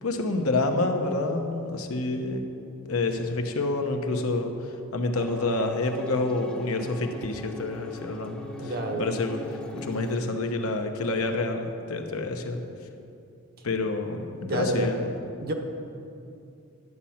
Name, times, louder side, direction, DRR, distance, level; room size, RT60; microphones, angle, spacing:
voice 1, 0.0-2.5 2.9-9.4 9.7-12.6 13.6-15.1, left 2 dB, 75° left, 4 dB, 0.9 m, -28 dB
sound 1, 5.1-10.2, left 2 dB, 5° left, 0.7 m, -41 dB
voice 2, 8.6-9.1 14.4-14.9 15.4-15.5, right 1 dB, 45° right, 4 dB, 1.0 m, -28 dB
11.0 x 7.3 x 5.7 m, 2.7 s
head